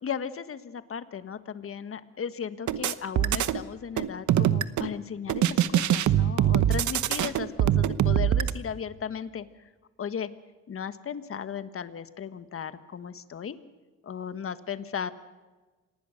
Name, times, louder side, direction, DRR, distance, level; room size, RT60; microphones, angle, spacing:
voice 1, 0.0-9.5 10.0-10.3 10.7-13.6 14.0-15.1, left 7 dB, 45° left, 12 dB, 1.6 m, -36 dB
sound 1, 2.7-3.6 4.0-4.9 5.3-8.5, right 11 dB, 70° right, 1.1 m, -23 dB
26.5 x 19.5 x 6.6 m, 1.3 s
cardioid pair, 90°, 30 cm